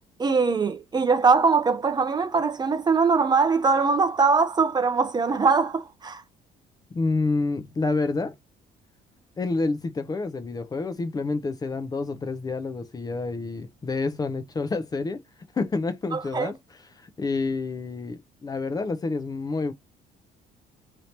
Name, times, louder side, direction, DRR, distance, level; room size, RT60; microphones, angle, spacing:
voice 1, 0.2-6.2 16.1-16.5, right 4 dB, 25° right, 0.5 m, -22 dB
voice 2, 6.9-8.4 9.4-15.2 15.5-16.6 17.0-19.7, left 3 dB, 20° left, 0.5 m, -28 dB
2.9 x 2.7 x 3.2 m
cardioid pair, 110°, 17 cm